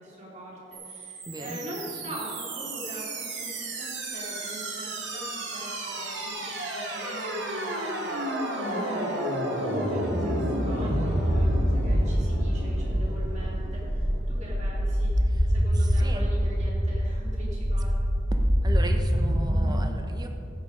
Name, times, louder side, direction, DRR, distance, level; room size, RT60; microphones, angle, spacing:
voice 1, 0.0-9.2 9.5-15.1 15.5-17.9, equal, 35° right, -5 dB, 3.4 m, -42 dB
sound 1, 0.7-19.7, equal, 65° right, 2.1 m, -27 dB
voice 2, 1.2-1.6 8.8-9.1 15.3-16.3 18.6-20.3, right 1 dB, 20° right, 4 dB, 1.0 m, -38 dB
16.5 x 7.6 x 5.2 m, 2.8 s
head